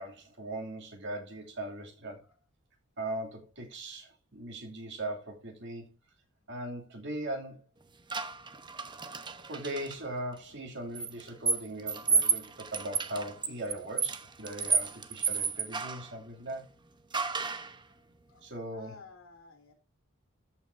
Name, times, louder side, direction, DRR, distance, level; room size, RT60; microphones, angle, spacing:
voice 1, 0.0-2.2 3.0-5.9 6.5-7.6 9.5-16.6 18.4-19.0, right 1 dB, 60° right, 2.7 m, -39 dB
sound 1, 8.1-10.0 11.0-16.1 17.1-17.8, right 5 dB, 25° right, 0.9 m, -31 dB
voice 2, 17.9-19.7, left 4 dB, 85° left, 3.0 m, -54 dB
14.0 x 5.9 x 2.7 m
head